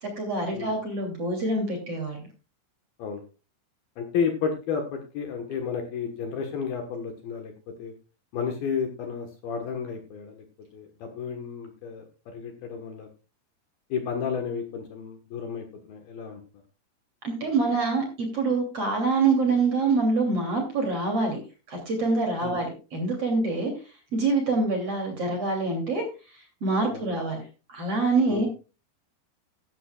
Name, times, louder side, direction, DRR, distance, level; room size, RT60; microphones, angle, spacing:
voice 1, 0.0-2.3 17.2-21.4 21.7-23.7 24.1-27.4 27.7-28.5, right 3 dB, 35° right, 2 dB, 3.2 m, -26 dB
voice 2, 4.0-7.5 7.8-7.9 8.3-10.4 10.7-12.0 12.3-13.1 13.9-16.4 22.4-22.6 26.9-27.1 28.3-28.5, left 6 dB, 65° left, 4 dB, 2.8 m, -32 dB
15.5 x 12.0 x 2.4 m, 0.32 s
omnidirectional pair, 5.5 m